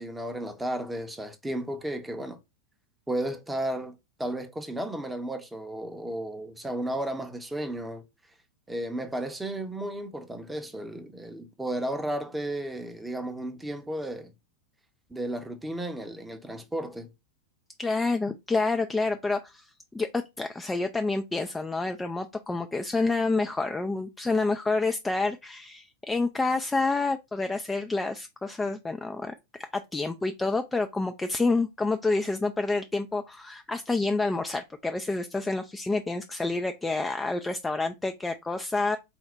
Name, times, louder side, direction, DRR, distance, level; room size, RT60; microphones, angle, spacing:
voice 1, 0.0-2.4 3.1-8.0 8.7-14.3 15.1-17.1, right 1 dB, 5° right, 0.7 m, -33 dB
voice 2, 17.8-19.7 19.9-29.3 29.7-39.0, left 3 dB, 10° left, 0.3 m, -28 dB
4.3 x 2.1 x 4.1 m
figure-of-eight pair, 90°, 0 cm